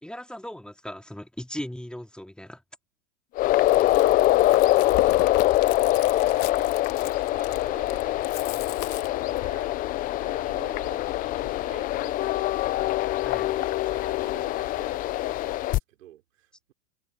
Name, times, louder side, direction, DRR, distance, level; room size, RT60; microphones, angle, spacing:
voice 1, 0.0-2.6 13.2-13.6, left 1 dB, ahead, 2.8 m, -38 dB
sound 1, 3.3-15.8, left 16 dB, 25° left, 0.4 m, -24 dB
Chewing mastication, 3.5-9.6, left 21 dB, 45° left, 2.2 m, -38 dB
voice 2, 3.6-5.1 5.4-16.7, right 13 dB, 80° right, 3.8 m, -49 dB
hypercardioid pair, 125°, 37 cm